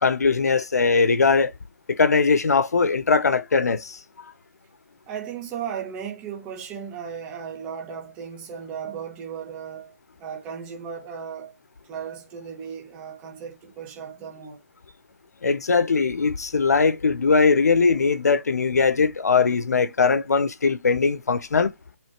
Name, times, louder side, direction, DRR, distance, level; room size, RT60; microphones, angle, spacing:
voice 1, 0.0-1.5 1.9-4.0 15.4-21.7, left 4 dB, 85° left, 0.9 m, -20 dB
voice 2, 5.1-11.5 11.9-14.6, right 7 dB, 15° right, 1.5 m, -36 dB
7.9 x 3.2 x 4.4 m
hypercardioid pair, 170°, 9 cm